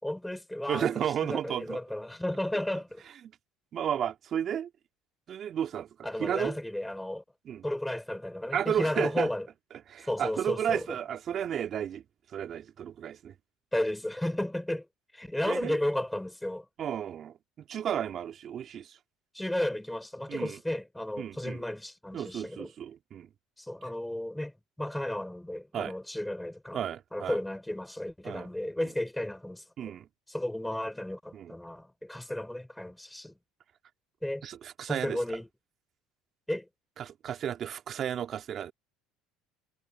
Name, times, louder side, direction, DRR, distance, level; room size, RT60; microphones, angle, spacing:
voice 1, 0.0-3.0 6.0-7.2 7.6-9.5 10.1-10.9 13.7-14.9 15.1-16.7 19.3-22.7 23.6-26.8 27.1-29.9 30.3-33.4 34.2-34.5 34.8-35.5 36.5-36.7, left 1 dB, 5° left, 5.3 m, -33 dB
voice 2, 0.7-1.8 3.7-4.7 5.3-5.9 6.2-6.6 7.5-7.6 8.5-9.3 9.9-12.0 12.3-13.3 15.5-15.8 16.8-17.3 17.7-19.0 20.3-20.6 21.2-21.6 22.1-23.3 25.7-25.9 26.7-27.4 28.2-28.5 29.8-30.1 31.3-31.5 34.4-35.2 37.0-38.7, right 9 dB, 50° right, 2.0 m, -33 dB
hypercardioid pair, 80°, 0 cm